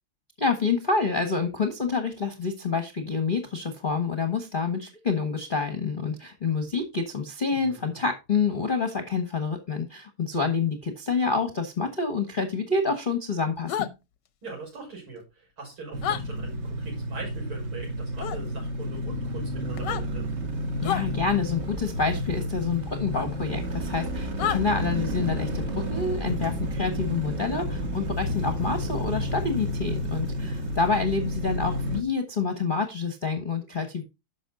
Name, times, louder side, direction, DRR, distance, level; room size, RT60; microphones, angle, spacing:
voice 1, 0.4-13.9 20.8-34.0, left 4 dB, 30° left, 6 dB, 1.2 m, -28 dB
voice 2, 7.5-8.0 14.4-20.3, right 3 dB, 80° right, -1 dB, 6.3 m, -41 dB
sound 1, 13.7-13.9 16.0-16.2 18.2-18.4 19.7-20.0 20.8-21.0 23.1-23.3 24.4-24.6, left 10 dB, 65° left, 1.3 m, -28 dB
riding on triumph bonneville speedmaster motorcycle, 15.9-32.0, equal, 35° right, 1.4 m, -31 dB
10.5 x 6.5 x 3.8 m, 0.25 s
omnidirectional pair, 2.3 m